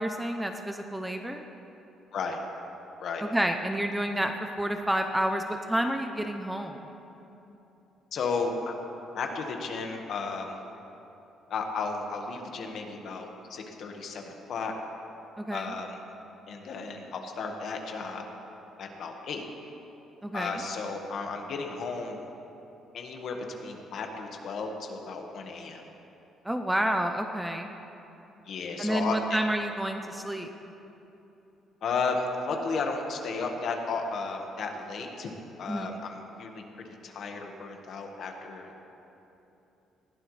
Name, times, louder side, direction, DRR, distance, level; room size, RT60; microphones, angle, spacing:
voice 1, 0.0-1.4 3.2-6.8 15.4-15.7 20.2-20.6 26.4-27.7 28.8-30.5 35.7-36.0, right 1 dB, 5° right, 5 dB, 0.5 m, -29 dB
voice 2, 8.1-8.7 9.1-10.6 11.5-14.7 15.5-16.0 16.5-18.3 18.8-19.4 20.3-22.2 22.9-25.8 28.5-29.2 31.8-35.3 35.6-36.6 37.0-38.8, left 4 dB, 50° left, 3 dB, 1.5 m, -34 dB
20.5 x 16.0 x 3.3 m, 3.0 s
cardioid pair, 170°, 0 cm